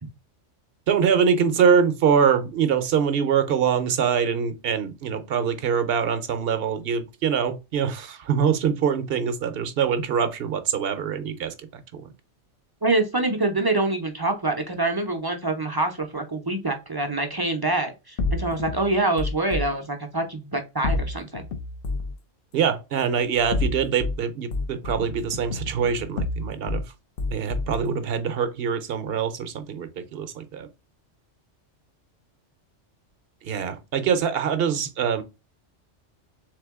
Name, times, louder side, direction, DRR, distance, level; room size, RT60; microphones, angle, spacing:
voice 1, 0.9-12.1 22.5-26.8 27.3-30.7 33.4-35.2, right 7 dB, 60° right, 0.8 m, -24 dB
voice 2, 12.8-21.4, right 2 dB, 30° right, 0.4 m, -25 dB
sound 1, 18.2-19.7 20.8-22.2 23.3-24.2 24.5-26.8 27.2-27.8, left 3 dB, 60° left, 0.7 m, -29 dB
3.7 x 3.3 x 3.5 m
omnidirectional pair, 1.3 m